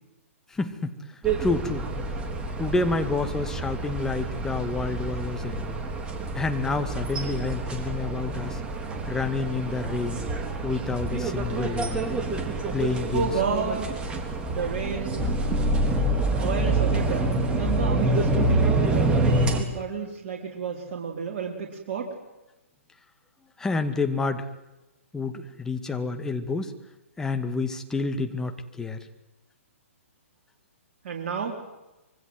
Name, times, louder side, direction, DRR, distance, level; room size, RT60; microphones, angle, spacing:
voice 1, 0.5-0.9 1.4-1.8 2.6-5.8 6.4-8.6 9.1-10.2 10.6-12.1 12.7-13.3 23.6-24.5 25.1-26.7 27.2-29.0, left 3 dB, 5° left, 7 dB, 2.0 m, -28 dB
sound 1, 1.2-19.6, right 2 dB, 15° right, 3.5 m, -27 dB
voice 2, 13.1-14.1 14.5-15.3 16.4-22.1 31.0-31.6, right 5 dB, 45° right, 0 dB, 4.0 m, -31 dB
25.5 x 24.0 x 8.1 m, 1.0 s
figure-of-eight pair, 125°, 8 cm